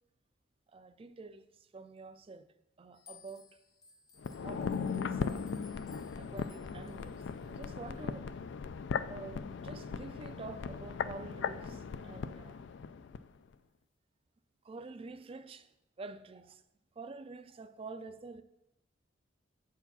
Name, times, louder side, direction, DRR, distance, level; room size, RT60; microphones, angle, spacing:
voice 1, 0.7-1.5 1.7-3.5 4.4-5.5 6.2-8.3 9.1-12.6 14.6-15.7 16.0-16.6 17.0-18.4, right 3 dB, 30° right, 0.4 m, -48 dB
sound 1, 2.9-8.0, left 6 dB, 20° left, 0.6 m, -60 dB
sound 2, 4.2-13.3 13.5-13.6, left 5 dB, 65° left, 0.4 m, -38 dB
8.1 x 4.7 x 5.5 m
head